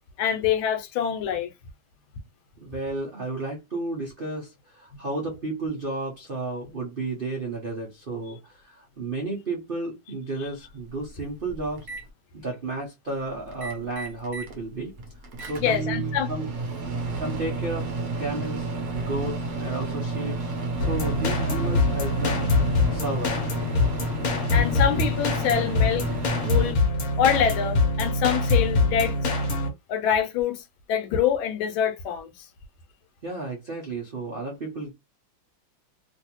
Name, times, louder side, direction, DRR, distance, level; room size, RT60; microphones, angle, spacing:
voice 1, 0.2-1.5 15.6-16.3 24.5-26.1 26.4-26.8 27.2-29.2 29.9-32.5, left 8 dB, 75° left, 1.4 m, -25 dB
voice 2, 2.6-11.9 12.3-14.9 15.5-16.5 16.8-18.7 18.9-20.4 20.8-23.4 33.2-34.9, right 2 dB, 85° right, 0.4 m, -32 dB
Microwave oven, 11.0-12.0 13.5-14.6 14.9-26.7, right 3 dB, 60° right, 1.0 m, -31 dB
sound 1, 20.8-29.7, left 3 dB, 60° left, 1.0 m, -24 dB
3.2 x 2.6 x 2.9 m
omnidirectional pair, 2.3 m